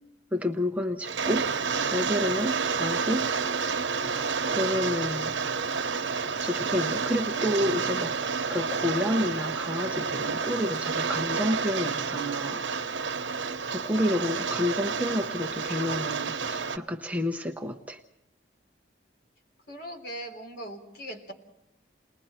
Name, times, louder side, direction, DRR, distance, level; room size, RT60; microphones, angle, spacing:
voice 1, 0.3-1.5 1.9-3.3 4.1-5.3 6.4-12.6 13.7-18.0, left 1 dB, 10° right, 3 dB, 0.8 m, -30 dB
Rain, 1.0-16.8, right 5 dB, 80° right, 1.1 m, -30 dB
voice 2, 19.7-21.3, right 1 dB, 55° left, 3 dB, 3.7 m, -39 dB
29.5 x 20.5 x 4.4 m, 0.82 s
head